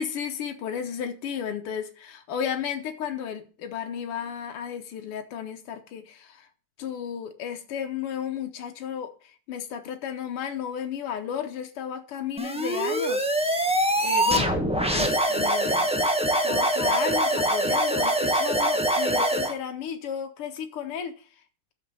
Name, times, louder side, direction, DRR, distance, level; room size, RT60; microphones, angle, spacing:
voice 1, 0.0-6.5 6.8-13.3 14.0-14.7 14.9-16.0 16.4-21.3, left 8 dB, 85° left, 1.9 m, -33 dB
sound 1, 12.4-19.5, right 1 dB, 10° right, 0.4 m, -24 dB
11.5 x 7.0 x 5.4 m
omnidirectional pair, 2.4 m